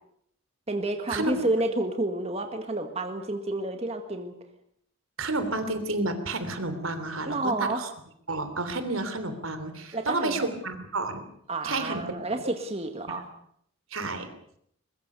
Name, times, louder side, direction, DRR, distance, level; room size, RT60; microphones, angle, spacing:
voice 1, 0.7-4.3 7.3-7.8 9.9-10.5 11.5-13.3, right 2 dB, 30° right, 5 dB, 1.8 m, -30 dB
voice 2, 5.2-7.9 8.3-11.2 11.6-12.2 13.1-13.2 13.9-14.3, right 2 dB, 80° right, 10 dB, 3.3 m, -30 dB
22.0 x 21.5 x 6.8 m, 0.68 s
head